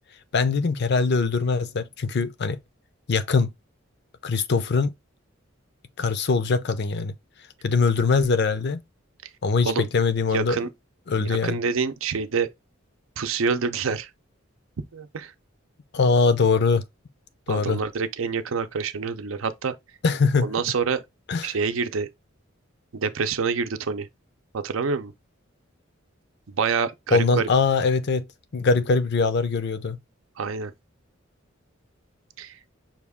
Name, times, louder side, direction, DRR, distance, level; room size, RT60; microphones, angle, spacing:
voice 1, 0.3-2.6 3.1-3.5 4.2-4.9 6.0-7.1 7.6-8.8 9.4-10.6 11.1-11.6 15.9-16.8 17.5-17.8 20.0-20.5 21.3-21.6 27.1-28.3 28.5-30.0, left 4 dB, 55° left, 0.5 m, -22 dB
voice 2, 10.3-10.7 11.2-12.5 13.2-14.1 14.9-15.3 17.5-19.8 20.4-21.0 21.4-22.1 22.9-24.1 24.5-25.1 26.5-27.5 30.4-30.7 32.4-32.6, right 5 dB, 85° right, 0.6 m, -27 dB
5.8 x 2.3 x 3.5 m
head